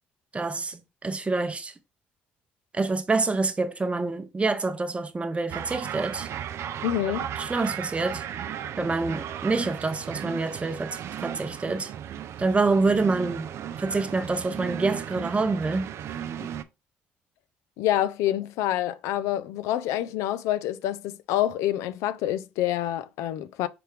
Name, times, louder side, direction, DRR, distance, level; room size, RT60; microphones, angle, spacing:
voice 1, 0.3-1.7 2.7-6.3 7.4-8.2 8.8-11.9 12.4-13.5 13.8-15.9, right 3 dB, 25° right, 0.7 m, -27 dB
sound 1, 5.5-16.6, right 9 dB, 60° right, 0.4 m, -35 dB
voice 2, 6.8-7.3 17.8-23.7, left 12 dB, 75° left, 0.3 m, -27 dB
4.4 x 3.4 x 3.2 m
hypercardioid pair, 55°, 5 cm